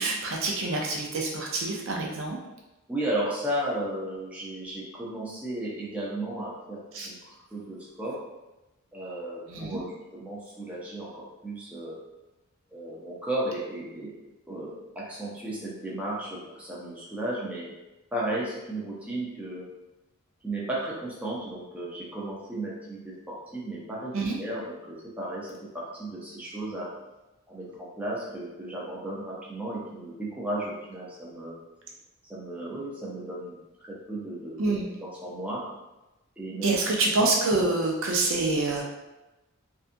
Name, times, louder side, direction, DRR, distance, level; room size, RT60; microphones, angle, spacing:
voice 1, 0.0-2.4 6.9-7.1 9.5-9.8 24.1-24.4 34.6-34.9 36.6-38.8, right 2 dB, 60° right, -1 dB, 0.5 m, -26 dB
voice 2, 2.9-7.2 7.5-8.2 8.9-9.9 10.1-12.0 12.7-14.1 14.5-17.7 18.1-19.6 20.4-26.9 27.5-31.5 32.3-34.6 35.0-35.6 36.4-36.8, right 1 dB, 5° right, -6 dB, 0.6 m, -34 dB
2.7 x 2.3 x 2.5 m, 1.0 s
head